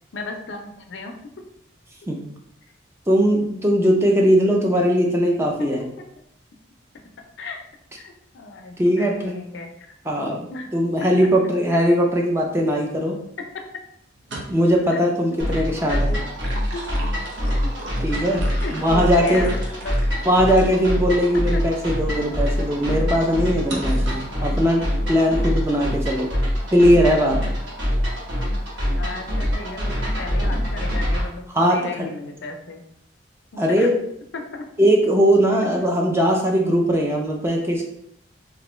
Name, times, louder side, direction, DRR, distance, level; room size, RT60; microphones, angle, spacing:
voice 1, 0.1-1.2 5.6-5.7 7.4-7.6 8.0-10.2 10.5-10.7 11.2-11.3 14.9-15.0 15.6-16.2 16.7-16.9 18.6-20.2 21.5-21.6 26.3-26.5 29.0-32.8 33.5-33.9 34.3-34.7, left 3 dB, 75° left, 4 dB, 0.5 m, -35 dB
voice 2, 3.1-5.8 8.8-9.4 10.1-13.2 14.5-16.1 18.0-19.5 20.3-26.3 26.7-27.4 31.5-32.1 33.6-34.0 34.8-37.8, equal, 15° right, 0 dB, 0.4 m, -19 dB
sound 1, 14.1-14.8 16.1-21.0 21.6-21.7 23.7-24.3, right 2 dB, 70° right, 0.7 m, -37 dB
sound 2, 15.4-31.3, equal, 90° right, 1.3 m, -25 dB
3.1 x 2.5 x 3.0 m, 0.73 s
head